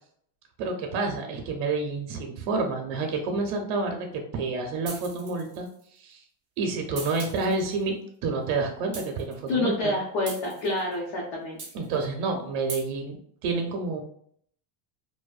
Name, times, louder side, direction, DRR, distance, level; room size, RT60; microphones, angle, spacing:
voice 1, 0.6-6.2 6.6-8.0 8.2-9.9 11.7-13.2 13.4-14.0, right 3 dB, 80° right, 3 dB, 0.6 m, -29 dB
sound 1, 4.8-5.8 7.0-7.7 8.9-9.5 10.3-10.9 11.6-12.0 12.7-12.8, right 4 dB, 25° right, 0.4 m, -40 dB
voice 2, 9.5-11.6, left 2 dB, 80° left, -4 dB, 0.9 m, -28 dB
2.7 x 2.1 x 2.3 m, 0.64 s
cardioid pair, 175°, 49 cm